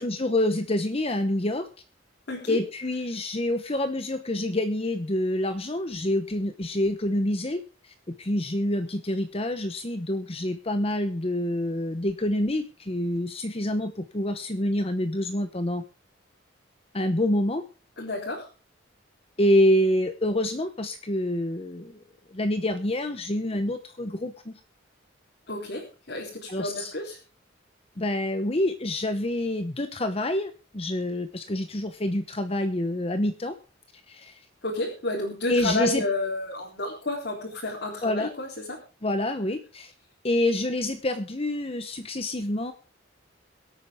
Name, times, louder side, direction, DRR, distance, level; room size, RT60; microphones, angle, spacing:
voice 1, 0.0-1.7 2.5-15.8 16.9-17.6 19.4-22.0 22.3-24.6 26.5-26.9 28.0-33.6 34.1-34.4 35.5-36.1 38.0-38.3 39.0-39.9 40.2-42.7, left 1 dB, 30° left, 9 dB, 0.9 m, -27 dB
voice 2, 2.3-2.6 18.0-18.4 25.5-25.8 26.1-27.2 34.6-38.8, left 2 dB, 60° left, -4 dB, 3.8 m, -31 dB
23.0 x 8.7 x 3.6 m, 0.34 s
head